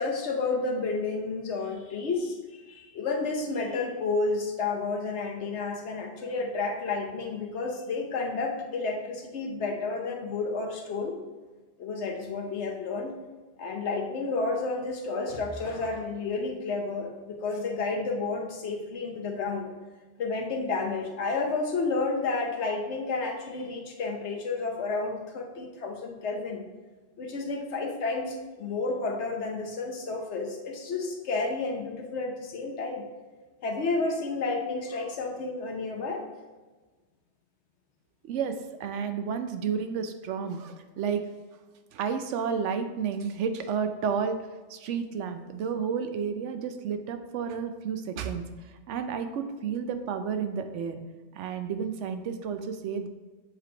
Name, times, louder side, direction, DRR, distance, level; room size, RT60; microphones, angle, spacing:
voice 1, 0.0-2.4 2.7-11.2 11.8-13.1 13.6-19.7 20.2-26.7 27.2-33.0 33.6-36.2, left 3 dB, 75° left, 2 dB, 1.1 m, -31 dB
voice 2, 38.3-41.2 41.9-44.4 44.7-48.4 48.9-51.0 51.3-53.1, right 6 dB, 85° right, 8 dB, 0.9 m, -31 dB
7.3 x 3.3 x 3.8 m, 1.3 s
omnidirectional pair, 1.2 m